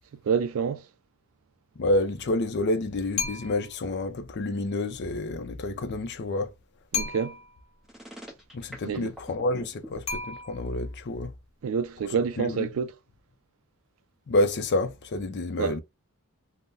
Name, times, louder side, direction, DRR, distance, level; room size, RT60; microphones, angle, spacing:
voice 1, 0.2-0.8 6.9-7.4 8.9-9.1 11.6-12.9 15.6-15.7, right 6 dB, 65° right, 0.3 m, -27 dB
voice 2, 1.8-6.5 8.5-11.3 12.4-12.7 14.3-15.8, left 2 dB, 50° left, 0.4 m, -28 dB
sound 1, 3.2-3.8 6.9-7.6 10.1-10.9, left 5 dB, 25° left, 1.0 m, -33 dB
sound 2, 7.8-10.0, right 1 dB, ahead, 0.7 m, -43 dB
2.7 x 2.0 x 3.5 m
head